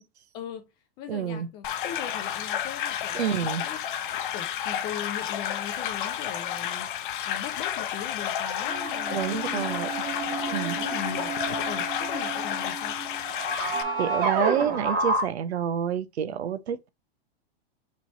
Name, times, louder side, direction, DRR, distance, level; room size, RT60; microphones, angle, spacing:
voice 1, 0.3-0.7 1.0-3.8 4.3-9.8 10.3-11.4 11.7-13.0, left 8 dB, 15° left, 0.3 m, -39 dB
voice 2, 1.1-1.5 3.1-3.6 9.1-9.9 10.5-10.8 13.5-13.7 14.0-16.9, right 9 dB, 85° right, 0.9 m, -28 dB
sound 1, 1.6-13.8, left 10 dB, 50° left, 0.7 m, -31 dB
sound 2, 8.7-15.2, right 3 dB, 30° right, 2.2 m, -30 dB
6.0 x 3.3 x 2.7 m
supercardioid pair, 155°, 31 cm